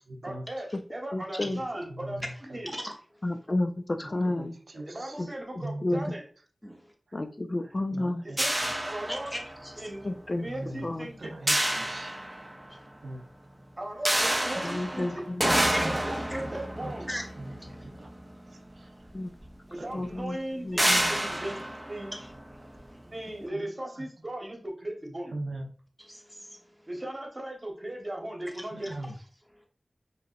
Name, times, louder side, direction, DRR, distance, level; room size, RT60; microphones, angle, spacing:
voice 1, 0.2-2.2 2.5-2.8 4.8-6.2 8.2-8.5 8.8-9.3 9.8-10.1 10.4-11.3 13.8-17.1 19.7-21.6 21.9-22.1 23.0-25.3 26.8-28.9, right 1 dB, 30° right, 0 dB, 1.4 m, -37 dB
voice 2, 1.1-1.6 3.2-4.6 5.2-5.3 5.8-6.0 7.1-8.2 10.0-10.5 10.8-11.1 14.6-15.4 19.1-19.3 19.9-20.4 20.6-21.1, left 2 dB, 40° left, 7 dB, 0.3 m, -31 dB
voice 3, 1.9-2.3 4.0-5.1 5.6-6.1 7.9-8.4 10.4-10.8 11.2-12.1 13.0-13.2 15.7-15.9 16.8-16.9 17.4-17.5 18.0-18.1 19.9-20.0 23.5-23.6 25.3-25.7 28.7-29.1, right 2 dB, 90° right, 3 dB, 0.6 m, -39 dB
sound 1, 8.4-9.7 11.5-12.8 14.1-18.5 19.4-19.5 19.9-20.1 20.8-22.8, right 1 dB, 15° right, 0.6 m, -29 dB
voice 4, 9.1-9.7 12.7-12.9 15.7-15.9 16.3-16.4 17.1-17.2 17.5-17.8 22.1-22.3 26.0-26.9 28.8-28.9, equal, 5° left, 1 dB, 0.9 m, -39 dB
4.9 x 3.1 x 2.6 m, 0.42 s
wide cardioid pair, 80°, 0 cm